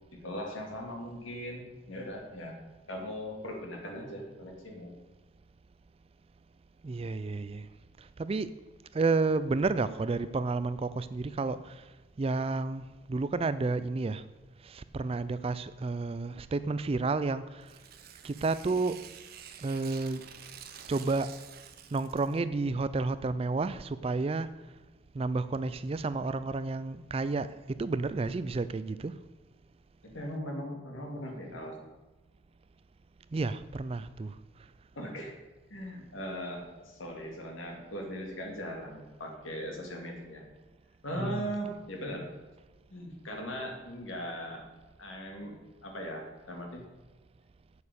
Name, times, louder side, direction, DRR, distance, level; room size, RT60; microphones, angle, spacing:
voice 1, 0.1-2.6 2.9-4.9 30.0-31.8 35.0-35.4 35.7-40.5 41.0-42.3 42.9-44.6 45.0-46.8, equal, 70° left, 2 dB, 2.2 m, -39 dB
voice 2, 6.8-7.7 8.0-8.5 8.9-11.9 12.2-14.3 14.6-17.7 18.2-19.0 19.6-20.2 20.9-21.3 21.9-24.5 25.1-29.2 33.3-34.4 41.1-41.5, right 3 dB, 30° right, 14 dB, 0.3 m, -31 dB
Tearing, 17.6-22.4, right 8 dB, 45° right, 0.7 m, -49 dB
8.4 x 7.1 x 6.7 m, 1.2 s
head